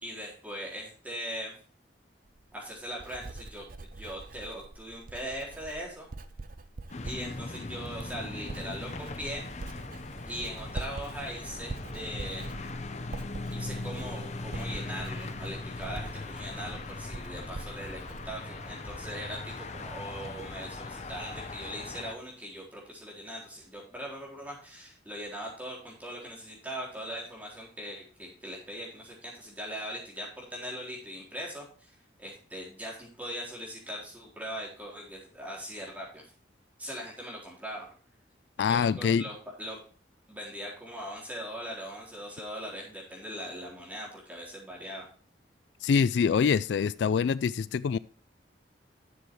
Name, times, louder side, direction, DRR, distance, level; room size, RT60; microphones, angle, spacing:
voice 1, 0.0-1.5 2.5-6.1 7.0-9.5 10.3-12.5 13.5-36.2 36.8-37.9 38.6-39.8 40.3-45.1, equal, 10° right, -4 dB, 3.9 m, -40 dB
Writing, 2.3-19.3 19.6-20.1, right 2 dB, 45° right, 0.6 m, -44 dB
sound 1, 6.9-22.1, left 2 dB, 35° left, 0.8 m, -39 dB
voice 2, 38.6-39.2 45.8-48.0, left 6 dB, 70° left, 18 dB, 0.3 m, -25 dB
11.5 x 6.9 x 3.1 m, 0.43 s
head